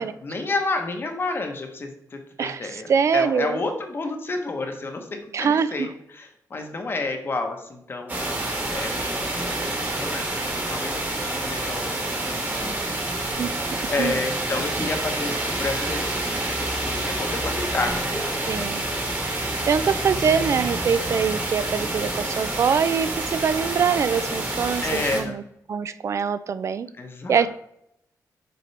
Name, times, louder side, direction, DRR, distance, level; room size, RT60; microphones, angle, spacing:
voice 1, 0.0-5.1 5.4-13.3 13.9-18.8 21.8-22.2 24.8-25.4 27.0-27.5, left 3 dB, 35° left, 4 dB, 0.9 m, -31 dB
voice 2, 2.4-3.6 5.3-5.9 13.4-13.5 13.8-14.2 18.5-18.8 19.7-25.4 25.7-26.9 27.3-27.5, right 6 dB, 45° right, 14 dB, 0.3 m, -23 dB
sound 1, 8.1-25.2, right 2 dB, 30° right, 1.4 m, -28 dB
6.8 x 5.1 x 3.3 m, 0.75 s
wide cardioid pair, 170°, 7 cm